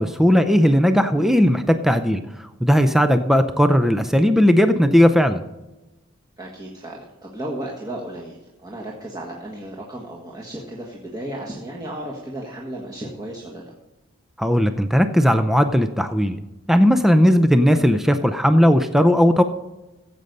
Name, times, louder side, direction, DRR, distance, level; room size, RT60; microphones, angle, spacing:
voice 1, 0.0-5.4 14.4-16.4 16.7-19.4, equal, ahead, 9 dB, 0.5 m, -17 dB
voice 2, 6.4-13.7, right 1 dB, 20° right, -3 dB, 1.6 m, -34 dB
15.5 x 7.9 x 5.4 m, 1.0 s
head